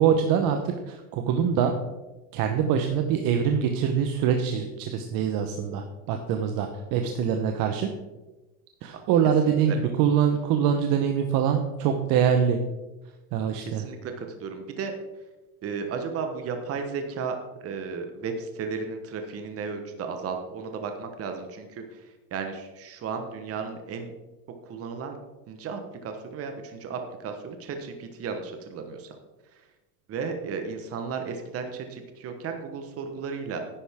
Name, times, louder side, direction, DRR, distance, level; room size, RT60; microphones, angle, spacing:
voice 1, 0.0-1.7 2.3-7.9 8.8-12.6 13.3-13.8, right 8 dB, 50° right, 5 dB, 1.0 m, -24 dB
voice 2, 9.5-9.8 13.6-14.9 15.6-17.4 17.6-24.1 24.6-25.2 25.5-29.2 30.1-33.6, right 5 dB, 30° right, 5 dB, 1.2 m, -34 dB
10.0 x 9.7 x 3.6 m, 1.1 s
supercardioid pair, 120°, 46 cm